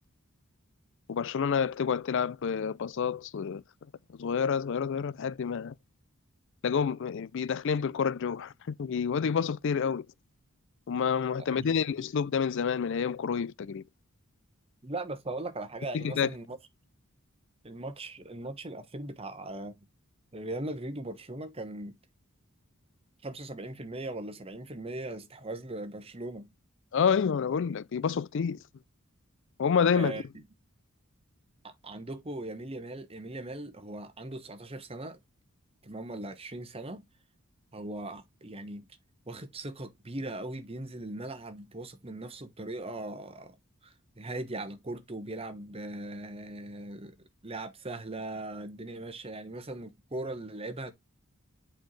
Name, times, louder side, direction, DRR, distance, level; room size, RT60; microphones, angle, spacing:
voice 1, 1.1-3.6 4.2-5.7 6.6-10.1 10.9-13.8 15.9-16.3 26.9-28.6 29.6-30.2, left 6 dB, 60° left, 0.4 m, -28 dB
voice 2, 14.8-16.6 17.6-19.7 20.3-22.0 23.2-26.5 29.9-30.2 31.6-35.2 35.8-37.0 37.7-38.9 39.3-43.6 43.8-47.1 47.4-50.9, right 2 dB, 25° right, 1.1 m, -39 dB
8.3 x 4.4 x 3.1 m
head